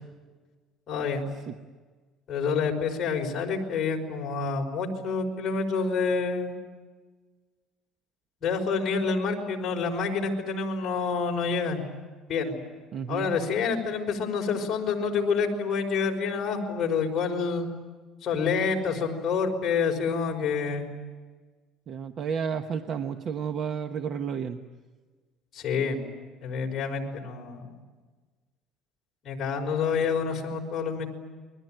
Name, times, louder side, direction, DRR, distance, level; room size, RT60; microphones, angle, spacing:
voice 1, 0.9-1.2 2.3-6.6 8.4-11.8 12.3-12.6 13.1-17.7 18.2-20.9 25.5-26.0 26.4-27.6 29.2-31.1, left 5 dB, 35° left, 0 dB, 5.3 m, -28 dB
voice 2, 12.9-13.4 21.9-24.6, right 7 dB, 40° right, 7 dB, 1.1 m, -31 dB
29.5 x 22.0 x 9.1 m, 1.4 s
cardioid pair, 150°, 0 cm